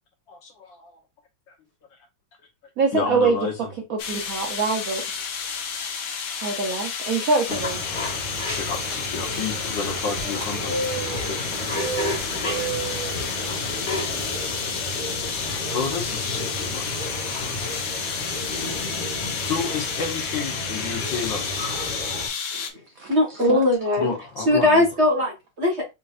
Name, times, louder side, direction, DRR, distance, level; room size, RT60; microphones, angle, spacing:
voice 1, 0.3-1.0 2.9-3.7 7.9-8.0 8.6-11.4 12.6-12.7 13.2-13.3 15.7-17.0 17.5-17.7 19.4-21.6 24.0-24.8, left 5 dB, 65° left, 1.5 m, -31 dB
voice 2, 2.8-3.4 3.9-5.0 6.4-7.8 23.0-23.1 23.5-23.6, right 4 dB, 80° right, 0.7 m, -24 dB
sound 1, 4.0-22.7, left 6 dB, 80° left, 0.7 m, -31 dB
sound 2, 7.5-22.3, left 2 dB, 35° left, 1.5 m, -32 dB
sound 3, 8.4-15.0, right 5 dB, 60° right, 1.4 m, -35 dB
voice 3, 23.1-25.8, left 1 dB, 35° right, 1.5 m, -21 dB
4.4 x 3.9 x 2.5 m
omnidirectional pair, 2.4 m